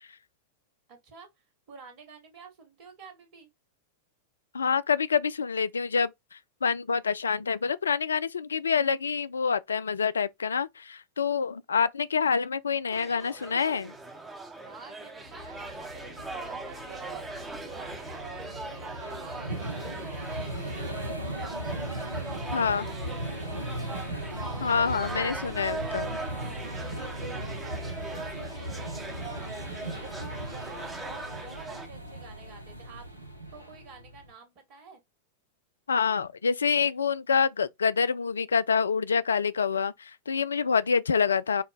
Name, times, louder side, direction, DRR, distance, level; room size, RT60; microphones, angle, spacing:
voice 1, 0.9-1.3 1.7-3.5 14.6-24.0 26.0-29.7 30.0-33.0 33.5-35.0, right 4 dB, 45° right, 1.8 m, -49 dB
voice 2, 4.5-13.9 22.5-22.8 24.6-26.2 35.9-41.6, left 6 dB, 70° left, 0.3 m, -27 dB
sound 1, 12.9-31.9, right 2 dB, 15° right, 0.9 m, -40 dB
sound 2, 15.3-34.3, right 1 dB, 85° right, 0.8 m, -38 dB
5.3 x 2.2 x 3.7 m
figure-of-eight pair, 90°, 0 cm